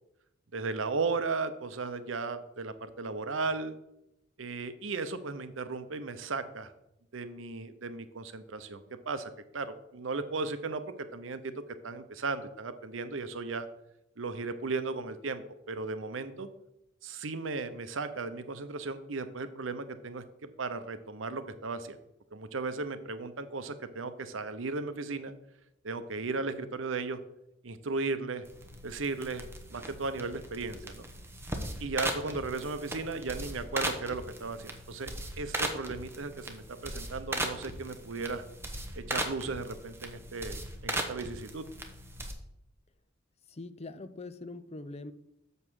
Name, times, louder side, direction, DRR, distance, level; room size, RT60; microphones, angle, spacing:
voice 1, 0.5-3.8 4.4-6.7 7.1-13.7 14.2-16.5 17.0-22.0 22.3-25.3 25.8-27.2 27.6-28.4 28.8-31.1 31.8-35.1 35.4-38.4 38.9-41.6, right 3 dB, 70° right, 11 dB, 0.8 m, -36 dB
sound 1, 28.4-42.3, right 1 dB, 15° right, 1.0 m, -38 dB
voice 2, 43.5-45.1, left 2 dB, 30° left, 13 dB, 0.5 m, -43 dB
7.3 x 5.5 x 6.2 m, 0.84 s
head